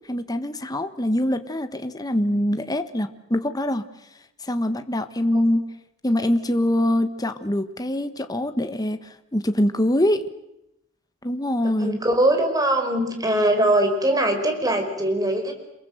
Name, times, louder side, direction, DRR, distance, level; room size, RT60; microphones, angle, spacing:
voice 1, 0.1-3.9 4.4-5.6 6.0-10.2 11.2-12.0, left 1 dB, 20° left, 8 dB, 1.4 m, -24 dB
voice 2, 11.8-15.5, right 1 dB, 20° right, 5 dB, 5.4 m, -21 dB
27.5 x 22.5 x 7.9 m, 0.85 s
head